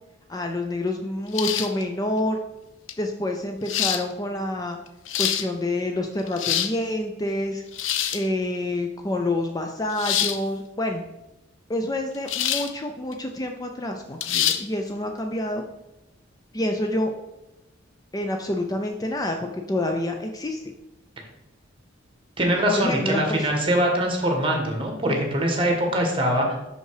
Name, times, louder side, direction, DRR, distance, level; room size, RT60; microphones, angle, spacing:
voice 1, 0.3-2.4 3.0-4.8 5.2-7.6 8.1-11.0 11.7-15.6 16.5-17.1 18.1-20.6 22.7-23.5, left 1 dB, 20° left, 4 dB, 0.4 m, -27 dB
sound 1, 1.3-1.8 2.9-3.0 3.7-4.0 4.9-5.5 6.2-6.8 7.7-8.3 10.0-10.4 12.3-12.7 13.1-13.2 14.2-14.6, left 10 dB, 70° left, 0.5 m, -25 dB
voice 2, 22.4-26.6, right 1 dB, 25° right, 2 dB, 1.5 m, -23 dB
5.9 x 5.4 x 4.8 m, 0.94 s
head